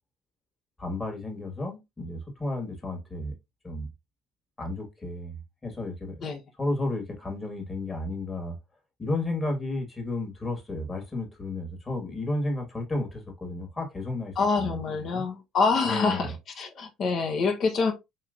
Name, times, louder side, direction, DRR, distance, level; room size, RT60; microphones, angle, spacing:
voice 1, 0.8-3.3 3.6-3.9 4.6-6.2 6.6-8.6 9.0-15.2 15.8-16.3, left 2 dB, 25° left, 1.5 m, -33 dB
voice 2, 14.4-17.9, left 4 dB, 55° left, 0.8 m, -26 dB
3.0 x 2.9 x 2.4 m
hypercardioid pair, 65°, 0 cm